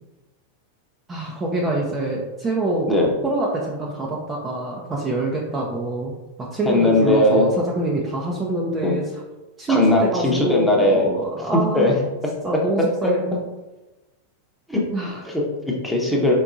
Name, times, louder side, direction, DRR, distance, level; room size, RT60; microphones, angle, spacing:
voice 1, 1.1-2.9 3.2-9.0 9.6-12.0 12.4-13.4 14.9-15.2, right 2 dB, 20° right, -2 dB, 0.6 m, -25 dB
voice 2, 6.7-7.5 8.8-9.0 9.7-11.1 11.7-11.9 14.7-14.8 15.3-16.3, left 1 dB, 5° left, -3 dB, 1.0 m, -19 dB
4.5 x 3.9 x 2.5 m, 1.1 s
figure-of-eight pair, 90°, 0 cm